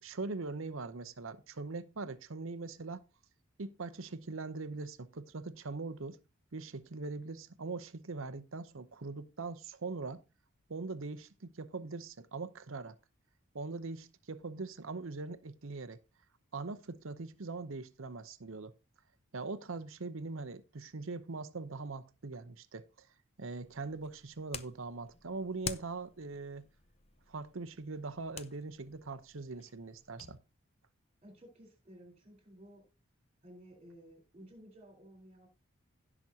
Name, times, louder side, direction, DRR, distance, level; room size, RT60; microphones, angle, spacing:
voice 1, 0.0-3.0 3.6-6.2 6.5-10.2 10.7-13.0 13.5-16.0 16.5-18.7 19.3-23.1 23.4-26.7 27.3-30.4, right 3 dB, 65° right, 0.8 m, -41 dB
sound 1, 23.6-30.4, left 6 dB, 30° left, 0.6 m, -48 dB
voice 2, 31.2-32.8 33.4-35.5, equal, 30° right, 4.2 m, -55 dB
16.5 x 6.1 x 2.8 m
head